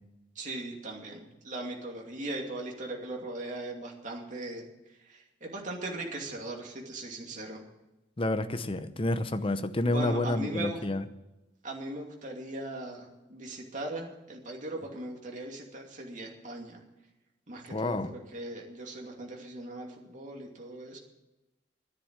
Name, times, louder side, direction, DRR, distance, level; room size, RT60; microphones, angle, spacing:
voice 1, 0.4-4.6 5.1-7.6 9.8-10.8 11.6-16.8 17.5-21.0, right 2 dB, 45° right, 0 dB, 2.6 m, -39 dB
voice 2, 8.2-11.0 17.7-18.1, left 1 dB, 30° left, 11 dB, 0.8 m, -29 dB
11.0 x 10.0 x 8.8 m, 0.99 s
head